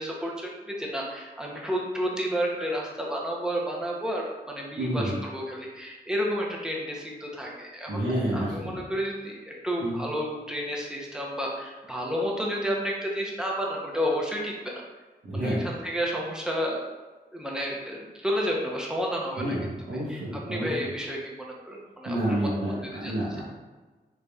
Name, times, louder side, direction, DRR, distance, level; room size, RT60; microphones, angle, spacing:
voice 1, 0.0-8.0 8.3-14.8 15.3-16.8 17.3-19.6 20.1-23.1, equal, 5° right, -3 dB, 0.6 m, -31 dB
voice 2, 4.8-5.2 7.9-8.8 9.8-10.0 15.2-15.6 19.4-20.7 22.1-23.4, right 1 dB, 85° right, -8 dB, 0.9 m, -29 dB
3.9 x 3.4 x 2.3 m, 1.3 s
wide cardioid pair, 125°, 18 cm